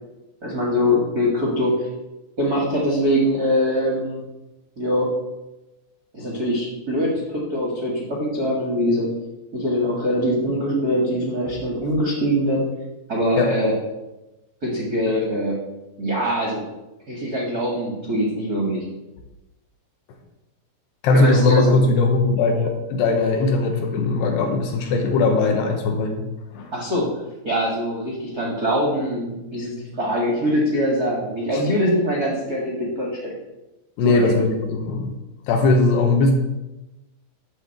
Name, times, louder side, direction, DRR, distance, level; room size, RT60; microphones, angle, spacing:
voice 1, 0.4-1.9 2.4-4.2 4.8-5.1 6.1-9.1 9.5-12.6 13.1-13.7 14.6-15.6 16.0-16.6 17.1-18.8 21.1-21.8 26.7-27.1 27.4-33.3 34.0-34.3, equal, 75° right, -2 dB, 0.8 m, -23 dB
voice 2, 21.0-26.2 26.5-26.7 31.5-31.6 34.0-35.1 35.5-36.3, left 3 dB, 75° left, 3 dB, 2.8 m, -19 dB
11.5 x 4.1 x 7.8 m, 1.0 s
omnidirectional pair, 5.2 m